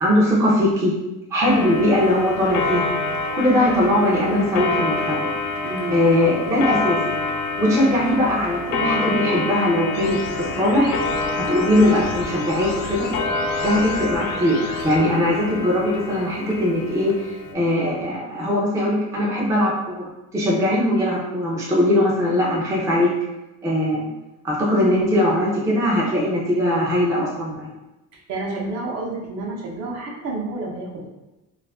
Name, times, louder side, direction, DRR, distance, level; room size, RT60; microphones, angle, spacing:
voice 1, 0.0-0.9 1.3-2.9 3.3-5.3 5.9-7.0 7.6-10.9 11.4-13.1 13.6-23.1 23.6-24.1 24.4-27.7, left 1 dB, 10° right, -5 dB, 0.4 m, -20 dB
Clock, 1.4-17.5, left 3 dB, 60° left, 0.4 m, -27 dB
voice 2, 5.6-6.0 6.5-6.7 28.3-31.1, right 2 dB, 50° right, -2 dB, 0.7 m, -29 dB
sound 1, 9.9-14.9, left 3 dB, 80° left, 0.8 m, -35 dB
2.5 x 2.4 x 3.4 m, 0.98 s
cardioid pair, 175°, 33 cm